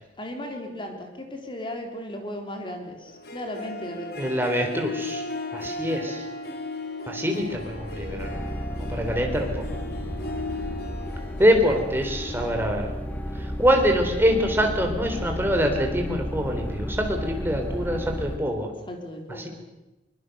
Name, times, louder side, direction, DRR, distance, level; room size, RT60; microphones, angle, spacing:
voice 1, 0.2-4.3 18.9-19.5, left 1 dB, 30° left, 3 dB, 3.5 m, -36 dB
Harp, 3.1-14.3, left 2 dB, 60° left, 3.0 m, -37 dB
voice 2, 4.2-5.2 5.5-6.2 7.1-8.4 8.8-9.6 11.4-12.9 13.3-18.7, equal, 15° right, 3 dB, 3.8 m, -24 dB
sound 1, 7.4-18.4, equal, 10° left, 1.4 m, -33 dB
23.5 x 22.5 x 6.8 m, 1.0 s
head